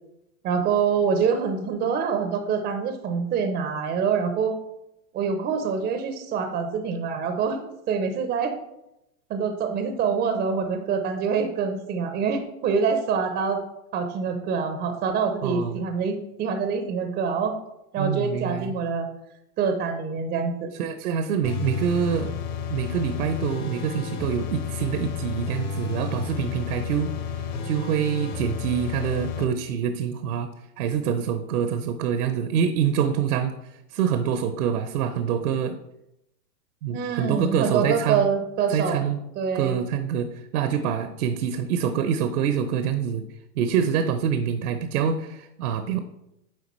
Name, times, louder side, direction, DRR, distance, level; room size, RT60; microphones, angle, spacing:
voice 1, 0.4-4.6 5.1-8.6 9.3-13.6 13.9-17.5 17.9-19.1 19.6-20.7 36.9-39.0 39.4-39.8, right 6 dB, 20° right, 6 dB, 0.5 m, -25 dB
voice 2, 15.4-15.8 18.0-18.7 20.8-22.3 22.7-30.5 30.8-33.5 33.9-35.8 36.8-38.3 38.7-39.2 39.5-43.3 43.6-46.0, right 8 dB, 65° right, 9 dB, 0.7 m, -26 dB
sound 1, 21.4-29.4, left 6 dB, 35° left, 0.9 m, -31 dB
9.4 x 3.9 x 3.0 m, 0.87 s
hypercardioid pair, 110°, 47 cm